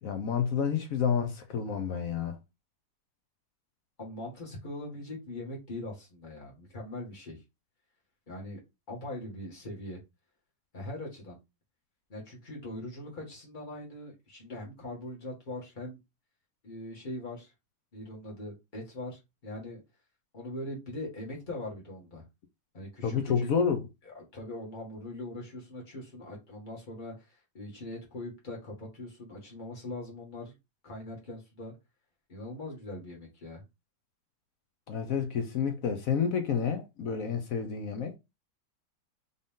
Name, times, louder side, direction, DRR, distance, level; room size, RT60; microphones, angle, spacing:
voice 1, 0.0-2.4 23.0-23.9 34.9-38.1, left 7 dB, 60° left, 1.0 m, -29 dB
voice 2, 4.0-7.4 8.3-8.6 8.9-10.0 10.7-11.4 12.1-16.0 16.6-17.5 17.9-19.8 20.3-22.2 22.7-23.5 24.1-30.5 30.8-31.7 32.3-33.6, left 1 dB, 25° left, 2.0 m, -41 dB
3.8 x 3.7 x 3.7 m
omnidirectional pair, 2.0 m